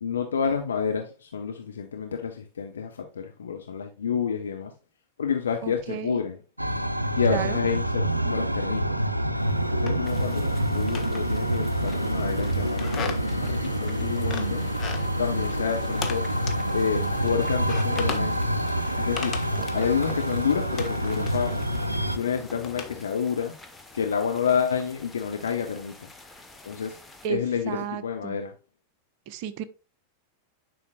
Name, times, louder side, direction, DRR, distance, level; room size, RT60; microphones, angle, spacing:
voice 1, 0.0-4.7 5.2-6.4 7.2-9.0 9.7-14.6 15.2-16.3 16.7-18.6 19.0-19.4 19.7-21.7 22.1-23.6 23.9-26.1 26.6-27.0 27.3-28.5, left 7 dB, 70° left, 0.9 m, -29 dB
voice 2, 5.6-6.2 7.3-7.6 27.2-27.4 27.7-28.4 29.3-29.6, right 9 dB, 45° right, 0.8 m, -32 dB
sound 1, 6.6-22.2, right 1 dB, 85° right, 0.5 m, -27 dB
sound 2, 9.4-23.0, left 6 dB, 25° left, 1.4 m, -39 dB
sound 3, 10.0-27.3, left 2 dB, 5° left, 1.2 m, -49 dB
10.0 x 5.6 x 2.4 m
figure-of-eight pair, 90°, 0 cm